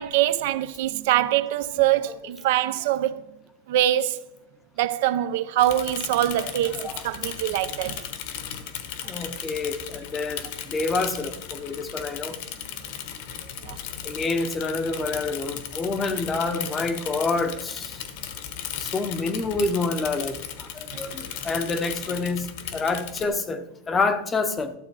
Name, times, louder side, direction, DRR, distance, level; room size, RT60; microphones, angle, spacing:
voice 1, 0.0-3.2 3.7-4.2 4.8-8.0 13.7-13.8 20.9-21.0, right 13 dB, 60° right, 0.6 m, -24 dB
Bicycle / Mechanisms, 5.6-23.3, left 9 dB, 55° left, 1.2 m, -36 dB
voice 2, 9.0-12.4 14.0-18.0 18.8-24.7, left 3 dB, 15° left, 0.7 m, -28 dB
12.5 x 7.4 x 4.8 m
supercardioid pair, 160°, 0 cm